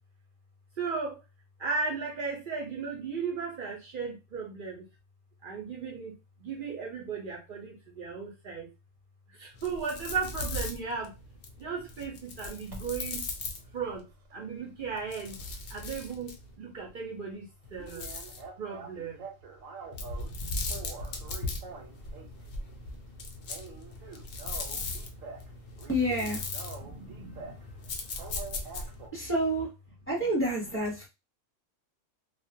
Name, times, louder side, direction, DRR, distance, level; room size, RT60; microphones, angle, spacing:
voice 1, 0.8-1.2 1.6-4.8 5.4-8.7 9.3-11.1 11.6-13.2 13.7-14.1 14.3-15.4 15.7-18.1 18.6-19.2 26.8-27.7, right 5 dB, 60° right, 0 dB, 0.5 m, -36 dB
sound 1, 9.5-14.0 14.8-16.5 17.6-18.5 19.9-29.1, left 3 dB, 60° left, 0.6 m, -39 dB
sound 2, 10.4-10.6 12.6-13.1 13.6-15.7 16.0-16.1 16.5-16.6 16.9-17.0 17.2-17.3 17.8-20.3 20.7-22.4 22.8-23.1 23.4-25.5 25.8-27.7 28.1-29.1, right 4 dB, 90° right, 1.0 m, -46 dB
voice 2, 25.9-26.4 29.1-29.7 30.1-31.1, equal, 10° left, -3 dB, 0.7 m, -28 dB
2.3 x 2.1 x 2.6 m, 0.27 s
omnidirectional pair, 1.3 m